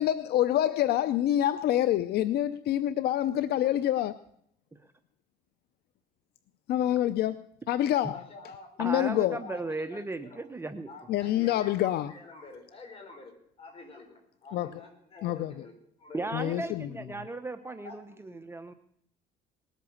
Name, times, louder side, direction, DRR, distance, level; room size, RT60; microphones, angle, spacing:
voice 1, 0.0-4.2 6.7-7.4 7.7-8.2 8.8-9.4 11.1-12.1 14.5-14.7 15.2-15.5 16.3-16.9, left 12 dB, 70° left, 0.6 m, -26 dB
voice 2, 8.1-10.4 10.9-13.3 13.6-15.7 16.0-16.8 17.1-17.2 17.8-18.2, left 3 dB, 35° left, 5.5 m, -48 dB
voice 3, 8.8-10.9 16.1-18.7, right 2 dB, 15° right, 0.9 m, -36 dB
19.5 x 8.3 x 7.2 m
cardioid pair, 110°, 17 cm